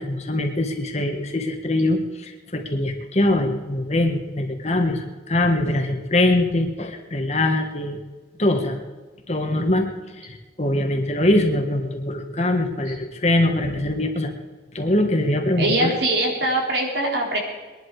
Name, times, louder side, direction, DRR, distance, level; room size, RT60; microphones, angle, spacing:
voice 1, 0.0-8.0 8.4-8.8 9.3-9.9 10.1-14.3 14.7-15.9, left 1 dB, 35° left, 4 dB, 1.6 m, -22 dB
voice 2, 15.6-17.4, right 1 dB, 75° right, 0 dB, 3.7 m, -22 dB
21.5 x 11.0 x 4.8 m, 1.3 s
head